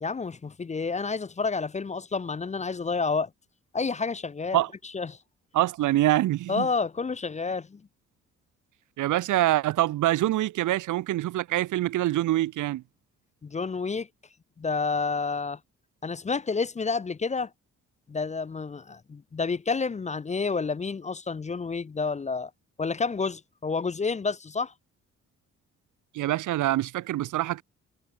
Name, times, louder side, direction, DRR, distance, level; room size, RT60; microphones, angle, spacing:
voice 1, 0.0-3.3 3.7-4.6 4.9-5.2 6.5-7.8 13.4-14.1 14.6-15.6 16.0-17.5 18.1-22.5 22.8-24.7, left 4 dB, 25° left, 0.7 m, -29 dB
voice 2, 5.5-6.7 9.0-12.8 26.1-27.6, right 15 dB, 80° right, 1.3 m, -25 dB
cardioid pair, 90°, 30 cm